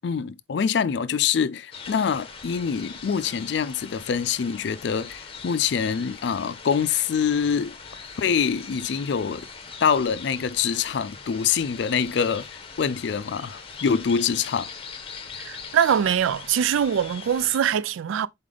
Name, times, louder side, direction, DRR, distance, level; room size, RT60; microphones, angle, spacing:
voice 1, 0.0-7.8 8.2-9.5 9.8-12.5 12.8-14.7, left 7 dB, 60° left, 0.4 m, -25 dB
sound 1, 1.7-17.6, left 5 dB, 30° left, 0.8 m, -41 dB
voice 2, 15.5-18.3, right 8 dB, 85° right, 0.4 m, -23 dB
4.3 x 3.4 x 3.7 m
head